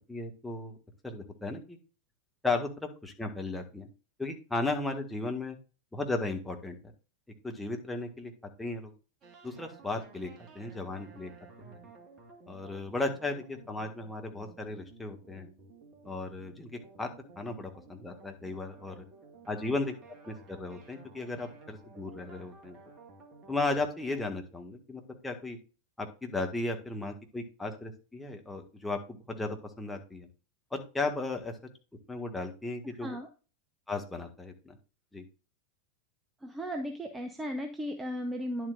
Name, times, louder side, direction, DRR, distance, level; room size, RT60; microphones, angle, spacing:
voice 1, 0.1-0.8 1.0-1.8 2.4-3.9 4.2-5.6 5.9-6.8 7.4-8.3 8.6-8.9 9.4-10.3 10.5-11.3 11.6-11.8 12.5-15.5 16.0-17.1 17.3-19.0 19.5-19.9 20.2-22.8 23.5-25.6 26.0-30.3 30.7-31.6 32.1-33.2 33.9-34.8 35.1-35.2, left 3 dB, 5° left, 2 dB, 1.7 m, -35 dB
sound 1, 9.2-24.2, right 4 dB, 30° right, 1.8 m, -54 dB
voice 2, 36.4-38.7, equal, 10° right, 5 dB, 0.9 m, -35 dB
10.5 x 7.6 x 2.5 m, 0.34 s
figure-of-eight pair, 90°, 0 cm